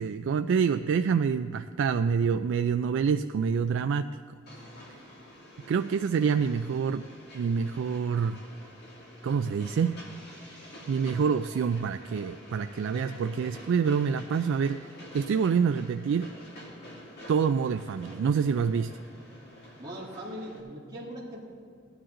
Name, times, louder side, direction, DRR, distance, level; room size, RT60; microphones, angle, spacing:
voice 1, 0.0-4.1 5.7-7.0 7.3-8.4 9.2-10.0 10.9-14.8 15.1-16.3 17.3-19.0, right 6 dB, 65° right, 9 dB, 0.3 m, -26 dB
Train, 4.5-20.6, left 1 dB, 55° left, 2.5 m, -48 dB
voice 2, 19.8-21.4, equal, 20° right, -8 dB, 2.1 m, -40 dB
16.5 x 10.5 x 3.8 m, 2.4 s
head